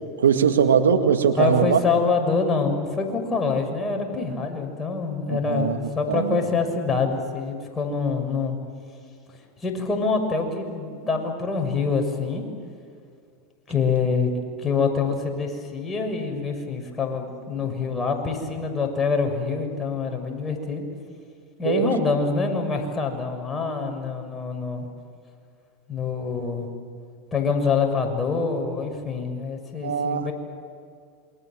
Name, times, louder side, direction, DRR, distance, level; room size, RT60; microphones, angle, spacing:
voice 1, 0.2-1.8 5.3-5.8 6.1-6.4 21.6-21.9 29.8-30.3, right 7 dB, 90° right, 7 dB, 2.0 m, -21 dB
voice 2, 1.4-8.6 9.6-12.4 13.7-14.3 14.6-20.8 21.6-24.9 25.9-26.7 27.3-30.3, left 4 dB, 20° left, 3 dB, 6.7 m, -25 dB
28.0 x 24.5 x 7.8 m, 2.3 s
hypercardioid pair, 95°, 0 cm